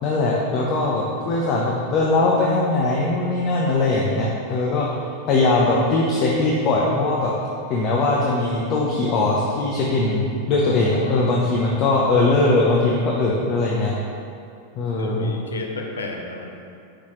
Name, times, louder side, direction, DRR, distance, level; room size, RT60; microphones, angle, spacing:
voice 1, 0.0-4.9 5.3-7.3 7.7-13.9 14.8-15.3, left 2 dB, 35° left, -3 dB, 0.9 m, -20 dB
voice 2, 10.6-11.4 15.0-16.5, left 3 dB, 70° left, 2 dB, 0.9 m, -33 dB
9.9 x 5.8 x 3.2 m, 2.5 s
figure-of-eight pair, 90°, 0 cm